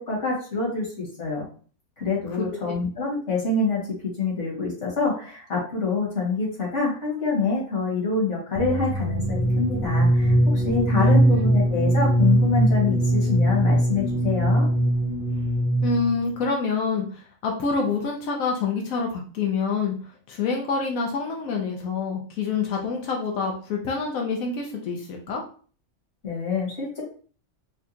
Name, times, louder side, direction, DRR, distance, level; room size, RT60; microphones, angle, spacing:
voice 1, 0.1-1.4 2.0-3.8 4.2-14.7 26.2-27.0, left 3 dB, 60° left, -4 dB, 2.0 m, -26 dB
sound 1, 8.6-16.2, right 1 dB, 5° left, 0.4 m, -21 dB
voice 2, 10.9-11.3 15.8-25.4, left 4 dB, 90° left, 0 dB, 1.1 m, -27 dB
4.5 x 2.2 x 2.8 m, 0.42 s
omnidirectional pair, 1.4 m